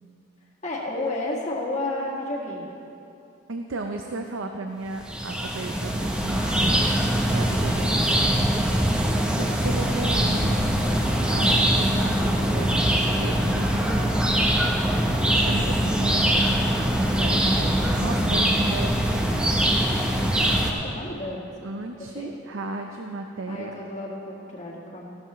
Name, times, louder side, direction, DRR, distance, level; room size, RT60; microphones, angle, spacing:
voice 1, 0.6-2.7 9.1-10.0 14.6-15.2 20.7-21.5 22.0-22.3 23.5-25.2, left 2 dB, 35° left, -4 dB, 1.8 m, -32 dB
voice 2, 3.5-6.8 7.3-8.1 9.3-10.7 11.3-13.8 15.4-16.7 17.0-19.6 21.6-23.7, right 3 dB, 85° right, 4 dB, 0.6 m, -34 dB
sound 1, 5.0-20.7, right 1 dB, 5° right, 0.8 m, -22 dB
15.5 x 13.0 x 3.1 m, 2.7 s
head